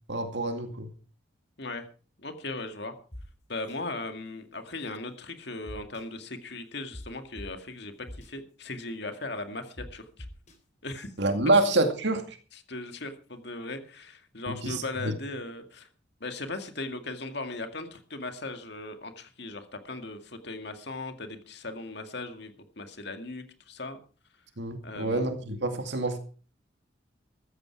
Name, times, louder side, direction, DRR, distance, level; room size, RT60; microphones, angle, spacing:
voice 1, 0.1-0.9 11.2-12.2 14.5-15.1 24.6-26.2, right 2 dB, 65° right, 7 dB, 2.2 m, -27 dB
voice 2, 2.2-2.9 3.5-10.3 10.8-11.1 12.5-15.9 16.2-24.0 24.8-25.2, left 2 dB, 60° left, 7 dB, 2.1 m, -38 dB
sound 1, 3.1-3.2 3.7-3.8 5.7-6.0 6.9-7.0 7.4-7.5 8.1-8.3 9.8-9.9 10.2-10.5, left 1 dB, 40° left, 4.2 m, -41 dB
14.5 x 14.0 x 4.7 m, 0.38 s
head